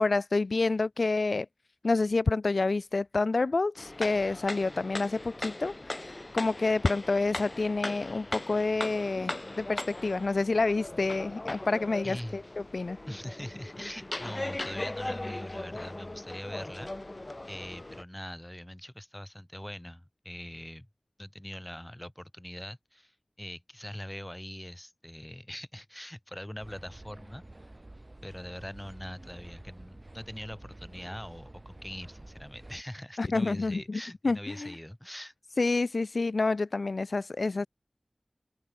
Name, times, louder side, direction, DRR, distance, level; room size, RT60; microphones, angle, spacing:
voice 1, 0.0-1.5 1.8-12.4 12.7-13.0 33.2-34.7 35.6-37.7, left 3 dB, 85° left, 0.3 m, -28 dB
sound 1, 3.8-18.0, left 2 dB, 40° left, 1.5 m, -39 dB
voice 2, 12.0-12.4 13.1-17.2 17.4-20.9 21.2-27.7 28.2-35.3, equal, 10° left, 3.1 m, -42 dB
sound 2, 26.6-32.8, right 1 dB, 35° right, 1.2 m, -49 dB
open air
wide cardioid pair, 60°, 0 cm